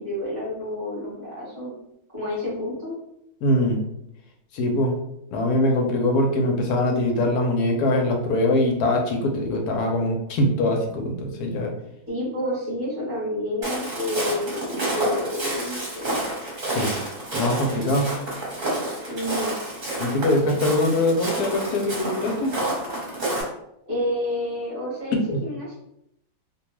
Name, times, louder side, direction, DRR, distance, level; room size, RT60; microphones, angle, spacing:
voice 1, 0.0-1.7 2.1-2.9 12.1-16.2 19.1-19.5 23.9-25.8, left 1 dB, 15° right, -8 dB, 0.8 m, -29 dB
voice 2, 3.4-3.8 4.5-4.9 5.3-11.7 16.7-17.0 17.3-18.1 20.0-22.6 25.3-25.4, left 1 dB, 90° left, 2 dB, 1.1 m, -22 dB
Walk footsteps, 13.6-23.4, right 1 dB, 35° right, 1.0 m, -29 dB
2.6 x 2.2 x 3.0 m, 0.79 s
omnidirectional pair, 1.6 m